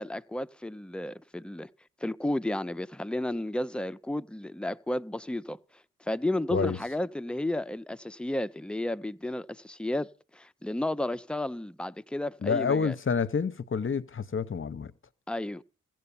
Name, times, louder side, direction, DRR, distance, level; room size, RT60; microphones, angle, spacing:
voice 1, 0.0-1.7 2.0-5.6 6.0-10.1 10.3-13.0 15.3-15.6, left 1 dB, 5° left, 0.5 m, -32 dB
voice 2, 12.4-14.9, left 5 dB, 40° left, 0.8 m, -28 dB
15.5 x 7.7 x 7.1 m
cardioid pair, 55°, 32 cm